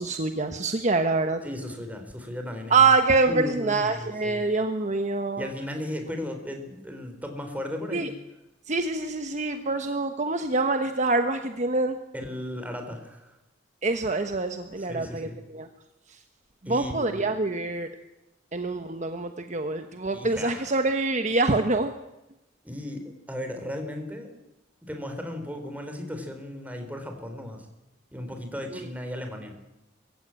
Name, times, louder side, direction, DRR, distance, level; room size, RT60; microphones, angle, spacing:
voice 1, 0.0-1.4 2.7-5.5 7.9-8.1 8.7-12.0 13.8-15.7 16.7-17.9 18.5-21.9, right 3 dB, 40° right, 7 dB, 1.2 m, -25 dB
voice 2, 1.4-2.7 3.2-4.4 5.4-8.2 12.1-13.3 14.8-15.4 16.6-17.3 20.1-20.8 22.6-24.3 24.9-27.7 28.1-29.5, left 1 dB, 10° right, 5 dB, 3.9 m, -36 dB
22.5 x 16.0 x 8.9 m, 0.97 s
head